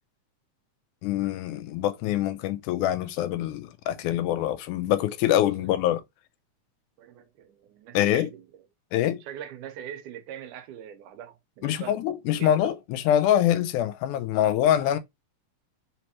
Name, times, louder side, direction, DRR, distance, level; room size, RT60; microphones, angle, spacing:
voice 1, 1.0-6.0 7.9-8.3 8.9-9.2 11.6-15.0, left 11 dB, 85° left, 2.0 m, -24 dB
voice 2, 5.6-5.9 7.0-8.5 9.2-12.0 12.3-12.5, right 9 dB, 85° right, 2.3 m, -42 dB
5.1 x 3.2 x 2.9 m
omnidirectional pair, 3.5 m